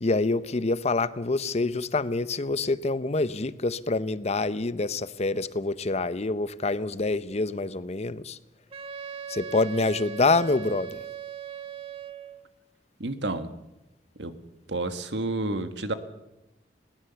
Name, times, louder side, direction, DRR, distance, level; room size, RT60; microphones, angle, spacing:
voice 1, 0.0-8.4 9.3-11.0, left 3 dB, 40° left, 0.7 m, -26 dB
Wind instrument woodwind instrument, 8.7-12.5, right 7 dB, 35° right, 1.2 m, -39 dB
voice 2, 13.0-13.5 14.2-14.4 14.7-15.9, right 2 dB, 80° right, 1.6 m, -30 dB
21.0 x 18.0 x 7.0 m
head